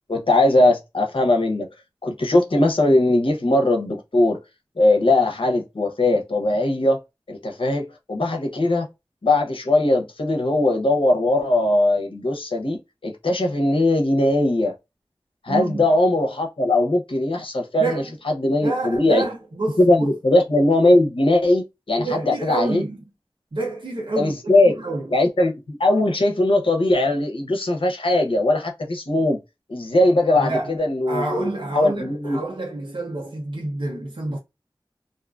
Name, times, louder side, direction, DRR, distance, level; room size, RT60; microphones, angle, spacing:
voice 1, 0.1-1.7 2.0-4.4 4.8-7.0 7.3-8.9 9.2-14.7 15.4-19.2 19.8-22.8 24.2-24.7 25.1-29.4 29.7-31.2 31.7-32.4, left 2 dB, 80° left, 0.7 m, -20 dB
voice 2, 15.5-15.9 17.8-18.1 18.5-20.1 22.0-23.0 23.5-25.1 30.3-30.8 31.1-34.4, right 2 dB, 65° right, 0.7 m, -28 dB
2.6 x 2.4 x 2.4 m
wide cardioid pair, 50°, 9 cm